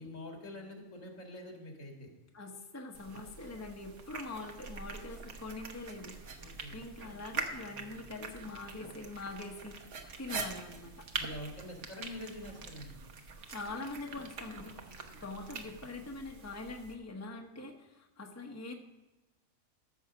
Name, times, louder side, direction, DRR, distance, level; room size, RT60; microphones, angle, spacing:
voice 1, 0.0-2.1 6.4-6.8 11.1-13.0, left 1 dB, 70° left, 1 dB, 2.4 m, -45 dB
voice 2, 2.3-9.8 10.2-11.1 13.5-18.7, left 3 dB, 15° left, 2 dB, 1.0 m, -44 dB
sound 1, 2.9-16.9, right 4 dB, 65° right, 1.4 m, -44 dB
14.0 x 6.4 x 4.9 m, 1.1 s
omnidirectional pair, 1.4 m